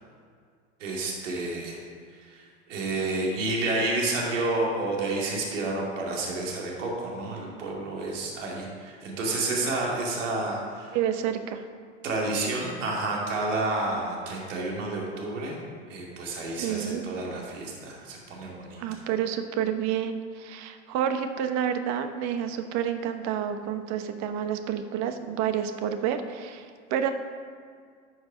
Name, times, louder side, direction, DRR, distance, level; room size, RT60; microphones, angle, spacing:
voice 1, 0.8-1.8 2.3-2.4 2.7-11.0 12.0-15.6 15.9-18.8, right 2 dB, 80° right, -2 dB, 2.8 m, -30 dB
voice 2, 10.9-11.6 16.6-17.0 18.8-27.1, right 9 dB, 50° right, 8 dB, 1.1 m, -29 dB
11.5 x 6.3 x 5.1 m, 2.1 s
hypercardioid pair, 100°, 37 cm